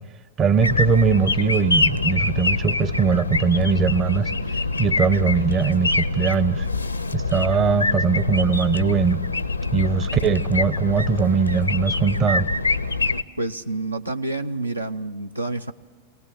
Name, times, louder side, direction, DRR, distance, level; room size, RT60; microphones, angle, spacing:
voice 1, 0.4-4.3 4.8-6.7 7.1-9.2 9.7-12.5, right 6 dB, 30° right, 0.7 m, -21 dB
sound 1, 0.6-13.2, left 3 dB, 85° left, 0.6 m, -24 dB
voice 2, 13.4-15.7, right 2 dB, 85° right, 0.6 m, -28 dB
22.5 x 18.0 x 8.6 m
figure-of-eight pair, 90°, 0 cm